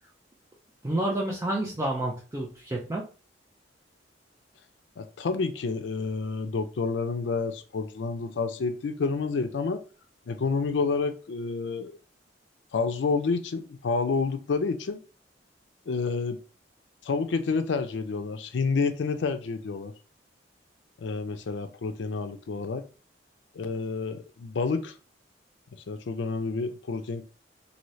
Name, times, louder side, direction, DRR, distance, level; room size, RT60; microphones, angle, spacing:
voice 1, 0.8-3.0, right 1 dB, 15° right, 0.5 m, -29 dB
voice 2, 5.0-9.8 10.3-11.9 12.7-15.0 15.9-16.4 17.0-19.9 21.0-22.8 23.6-24.9 25.9-27.2, left 4 dB, 70° left, 0.4 m, -29 dB
2.7 x 2.6 x 3.1 m
head